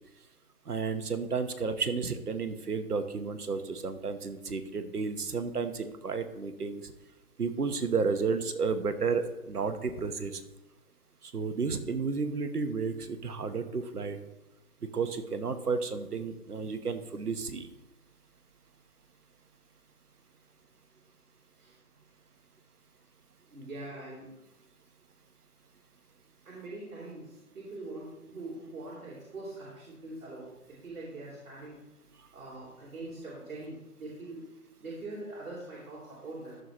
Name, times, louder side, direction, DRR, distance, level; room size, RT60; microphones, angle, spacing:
voice 1, 0.7-6.9 7.4-10.4 11.3-14.2 14.9-17.7, right 4 dB, 85° right, 9 dB, 1.2 m, -32 dB
voice 2, 23.5-24.3 26.4-31.8 32.3-34.5 34.8-36.6, right 2 dB, 65° right, -7 dB, 3.6 m, -43 dB
14.0 x 6.6 x 3.0 m, 0.99 s
figure-of-eight pair, 155°, 45 cm